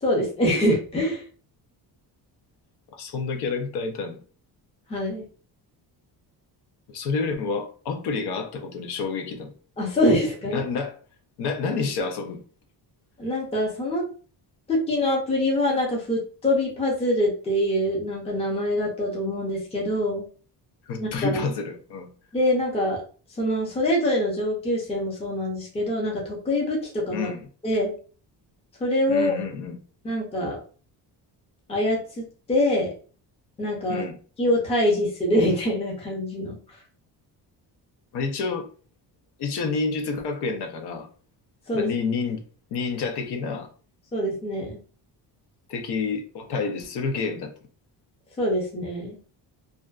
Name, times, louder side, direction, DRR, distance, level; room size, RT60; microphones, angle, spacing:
voice 1, 0.0-1.2 4.9-5.2 9.8-10.6 13.2-14.0 14.7-20.3 21.0-21.4 22.3-23.0 23.3-27.3 27.6-27.9 28.8-29.3 30.0-30.6 31.7-32.9 33.6-34.0 34.4-36.6 41.7-41.9 44.1-44.8 48.4-49.2, left 1 dB, 15° left, 0.5 m, -24 dB
voice 2, 2.9-4.2 6.9-9.5 10.5-11.0 11.4-12.4 20.9-22.1 27.1-27.5 29.1-29.8 33.9-34.1 38.1-38.7 39.4-41.1 41.7-42.4 42.7-43.7 45.7-47.5, left 4 dB, 65° left, 0.6 m, -29 dB
2.5 x 2.2 x 2.3 m
cardioid pair, 170°, 42 cm